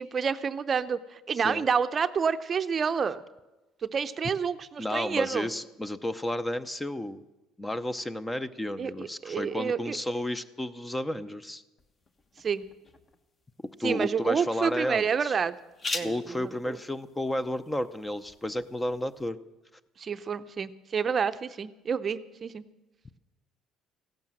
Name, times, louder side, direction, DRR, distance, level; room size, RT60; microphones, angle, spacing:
voice 1, 0.0-3.2 3.8-5.5 8.8-10.0 12.4-12.6 13.8-15.5 15.9-16.8 20.0-22.6, right 6 dB, 35° right, 11 dB, 0.7 m, -29 dB
voice 2, 4.8-7.2 7.6-11.6 13.8-15.4 16.0-19.4, left 1 dB, 10° left, 12 dB, 0.7 m, -32 dB
sound 1, 11.8-19.3, left 3 dB, 30° left, 1.3 m, -43 dB
15.5 x 12.0 x 7.7 m, 1.1 s
cardioid pair, 115°, 0 cm